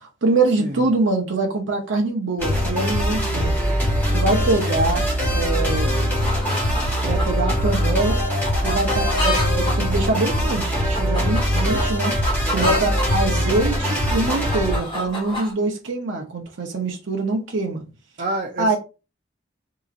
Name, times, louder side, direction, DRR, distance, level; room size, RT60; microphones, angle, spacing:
voice 1, 0.0-3.5 4.1-5.0 5.3-5.9 7.0-8.2 8.6-12.2 12.5-17.8 18.6-18.8, right 3 dB, 90° right, 0.7 m, -24 dB
sound 1, 2.4-14.8, equal, 10° left, 2.1 m, -22 dB
voice 2, 5.6-6.0 12.5-12.9 18.2-18.8, right 2 dB, 45° right, 0.6 m, -30 dB
sound 2, 6.2-13.1 13.5-15.5, left 1 dB, 30° left, 1.5 m, -30 dB
3.8 x 2.8 x 2.5 m
head